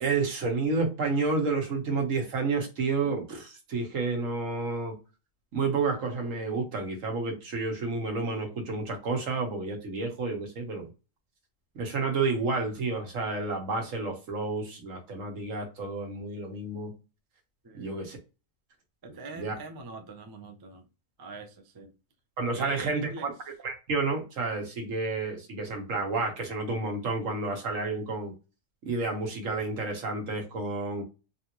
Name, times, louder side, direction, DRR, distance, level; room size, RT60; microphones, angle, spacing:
voice 1, 0.0-4.9 5.5-10.9 11.7-16.9 17.7-18.2 19.3-19.5 22.4-23.3 23.6-28.3 28.8-31.0, right 3 dB, 85° right, 1.4 m, -30 dB
voice 2, 17.6-18.0 19.0-20.9 21.2-21.9 22.5-23.3, right 3 dB, 40° right, 0.3 m, -43 dB
3.5 x 2.6 x 2.9 m
omnidirectional pair, 1.3 m